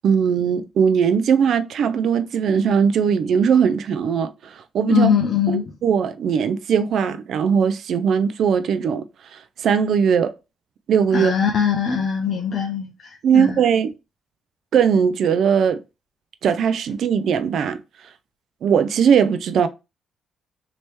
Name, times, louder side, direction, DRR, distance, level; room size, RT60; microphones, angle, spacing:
voice 1, 0.0-5.1 5.5-9.1 9.3-10.3 10.9-11.4 13.2-13.9 14.7-15.8 16.4-17.8 18.6-19.7, right 7 dB, 65° right, 0.3 m, -19 dB
voice 2, 4.9-5.6 11.1-13.6, left 7 dB, 55° left, 0.5 m, -21 dB
3.3 x 2.9 x 3.0 m
cardioid pair, 90°, 0 cm